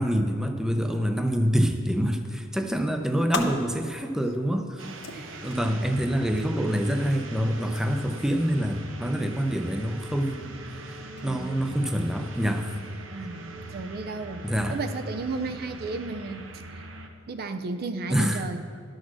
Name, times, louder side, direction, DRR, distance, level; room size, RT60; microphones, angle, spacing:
voice 1, 0.0-4.8 5.4-10.5 11.2-12.8 13.2-13.3 14.4-14.8 18.1-18.4, equal, 5° right, 5 dB, 0.6 m, -26 dB
sound 1, 2.6-13.0, left 4 dB, 60° left, 0.8 m, -42 dB
sound 2, 4.8-17.1, right 2 dB, 85° right, 0.9 m, -42 dB
voice 2, 5.1-5.6 11.2-11.8 13.1-16.5 17.3-18.6, right 3 dB, 50° right, 9 dB, 0.5 m, -34 dB
11.0 x 6.4 x 6.2 m, 2.3 s
head